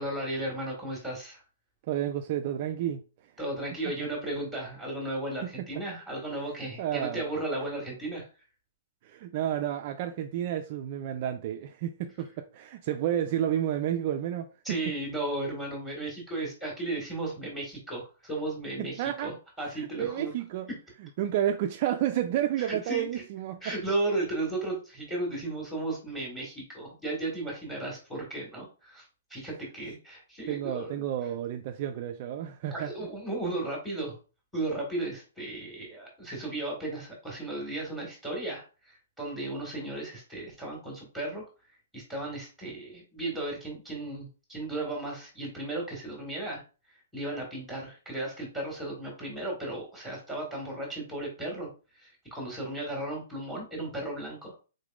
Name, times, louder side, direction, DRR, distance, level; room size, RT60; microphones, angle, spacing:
voice 1, 0.0-1.4 3.4-8.3 14.6-20.3 22.6-23.2 23.6-29.0 29.3-31.0 32.7-34.1 34.5-41.4 41.9-46.6 47.1-51.7 52.0-54.5, right 2 dB, ahead, 1.6 m, -35 dB
voice 2, 1.8-3.0 3.9-4.0 5.4-5.7 6.8-7.2 9.0-14.9 18.8-19.3 19.7-20.7 21.2-23.7 30.5-32.9, right 11 dB, 40° right, 0.3 m, -31 dB
3.8 x 3.4 x 2.4 m
hypercardioid pair, 160°, 0 cm